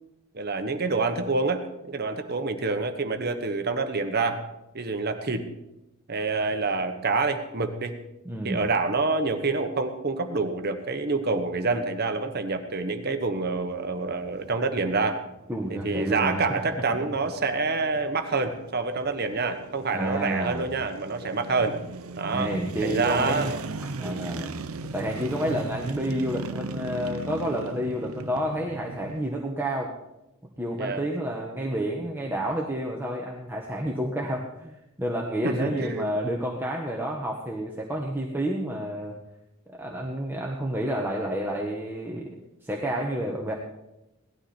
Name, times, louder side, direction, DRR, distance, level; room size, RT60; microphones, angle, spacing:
voice 1, 0.3-4.4 4.7-5.5 6.1-8.0 8.4-15.2 15.7-21.8 22.2-22.5 22.8-23.6 24.0-24.3 30.8-31.0 35.4-36.1, right 3 dB, 45° right, 7 dB, 1.2 m, -27 dB
voice 2, 8.2-8.6 15.5-16.6 19.9-20.7 22.3-23.5 24.0-24.5 24.9-29.9 30.6-39.2 39.8-42.3 42.6-43.5, right 1 dB, 10° right, -1 dB, 1.3 m, -30 dB
sound 1, 14.1-29.3, right 3 dB, 75° right, 0.7 m, -38 dB
18.0 x 12.5 x 4.4 m, 0.93 s
head